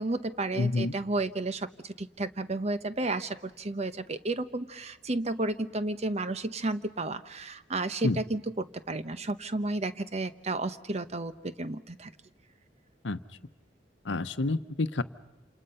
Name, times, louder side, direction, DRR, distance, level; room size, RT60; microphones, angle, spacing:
voice 1, 0.0-12.1, right 2 dB, 35° right, 12 dB, 0.9 m, -32 dB
voice 2, 0.5-0.9 8.0-8.2 13.0-13.2 14.0-15.0, left 3 dB, 75° left, 13 dB, 0.9 m, -28 dB
28.0 x 27.5 x 5.6 m, 1.0 s
head